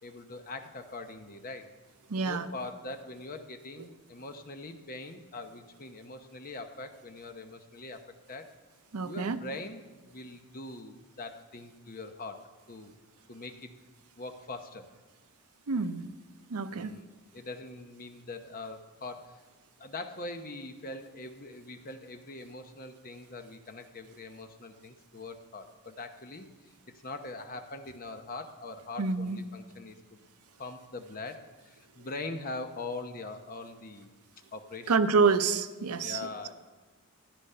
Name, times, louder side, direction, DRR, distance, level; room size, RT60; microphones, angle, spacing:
voice 1, 0.0-1.7 2.2-8.0 8.3-8.5 9.0-12.4 12.7-12.9 13.3-13.7 14.2-14.9 16.7-17.1 17.3-19.4 19.8-26.7 27.0-30.2 30.6-34.1 34.5-35.0 36.0-36.5, left 2 dB, 40° left, 6 dB, 0.9 m, -42 dB
voice 2, 2.1-2.5 8.9-9.4 15.7-16.1 16.5-16.9 29.0-29.4 34.9-36.2, right 4 dB, 85° right, 11 dB, 0.7 m, -27 dB
13.5 x 10.0 x 5.6 m, 1.3 s
head